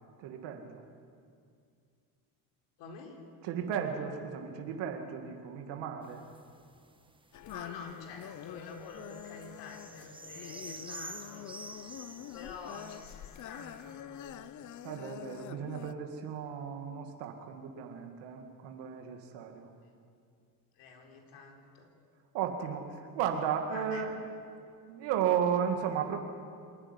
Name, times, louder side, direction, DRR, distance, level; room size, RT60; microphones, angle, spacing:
voice 1, 0.2-0.8 3.4-6.2 14.8-19.7 22.3-24.2 24.9-26.2, right 8 dB, 75° right, 4 dB, 2.2 m, -34 dB
voice 2, 2.8-3.2 7.4-11.5 12.3-14.6 20.8-21.9 23.7-24.1, left 4 dB, 75° left, 1 dB, 4.1 m, -48 dB
sound 1, 6.0-13.9, right 3 dB, 10° right, 1.3 m, -50 dB
sound 2, 7.3-15.9, left 11 dB, 45° left, 0.7 m, -46 dB
26.5 x 10.0 x 9.9 m, 2.3 s
supercardioid pair, 105°, 43 cm